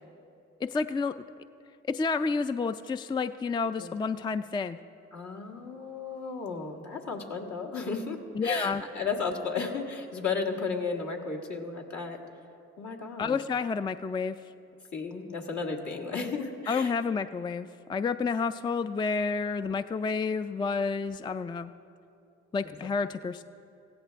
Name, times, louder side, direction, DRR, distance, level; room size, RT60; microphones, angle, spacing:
voice 1, 0.6-1.1 1.9-4.8 8.3-8.8 13.2-14.4 16.7-21.7 22.5-23.4, left 4 dB, 15° left, 11 dB, 0.3 m, -30 dB
voice 2, 5.1-12.2 12.8-13.4 14.9-16.9, left 4 dB, 65° left, 1 dB, 1.7 m, -34 dB
16.5 x 16.0 x 3.4 m, 2.6 s
cardioid pair, 60°, 30 cm